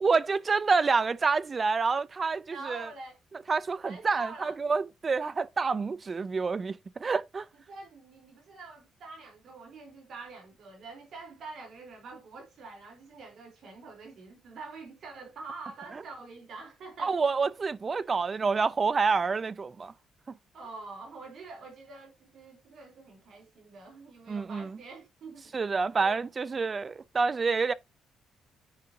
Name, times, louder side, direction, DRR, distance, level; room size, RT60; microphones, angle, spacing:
voice 1, 0.0-2.9 3.5-7.5 17.0-19.9 24.3-24.8 25.5-27.7, right 4 dB, 35° right, 0.5 m, -28 dB
voice 2, 2.5-3.2 3.9-4.5 7.5-17.2 20.5-25.5 26.0-26.1, right 3 dB, 65° right, 3.7 m, -46 dB
9.6 x 5.0 x 2.7 m
cardioid pair, 90°, 0 cm